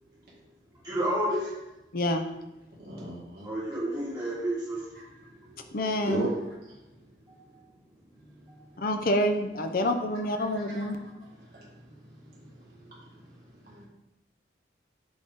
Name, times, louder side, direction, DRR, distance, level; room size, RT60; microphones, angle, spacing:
voice 1, 0.8-1.5 3.4-4.8 7.3-7.5 8.5-8.6, right 1 dB, 20° right, -10 dB, 2.2 m, -30 dB
voice 2, 1.9-2.3 5.7-6.3 8.8-11.0, left 1 dB, 50° left, 5 dB, 0.6 m, -27 dB
voice 3, 2.8-3.5 5.2-5.8 6.0-6.4 10.5-10.9 11.5-13.2 13.6-13.9, right 2 dB, 55° right, -7 dB, 1.9 m, -38 dB
7.8 x 3.6 x 3.7 m, 0.94 s
head